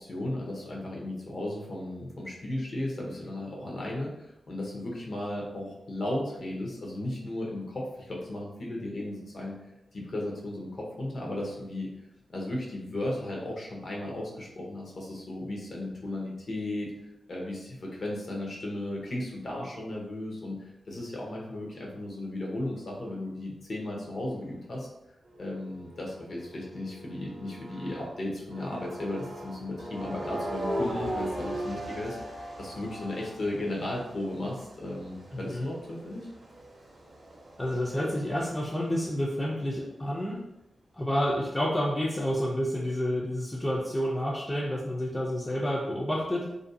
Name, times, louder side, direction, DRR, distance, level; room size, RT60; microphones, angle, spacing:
voice 1, 0.0-9.6 9.9-11.9 12.3-16.9 17.3-24.9 25.4-36.3, left 1 dB, 55° left, -2 dB, 0.7 m, -35 dB
sound 1, 25.3-28.1 28.5-38.9, right 1 dB, 45° right, 0.5 m, -39 dB
voice 2, 35.3-35.7 37.6-40.4 41.0-46.5, equal, 15° left, -3 dB, 0.4 m, -29 dB
2.5 x 2.2 x 2.6 m, 0.87 s
wide cardioid pair, 115°, 0 cm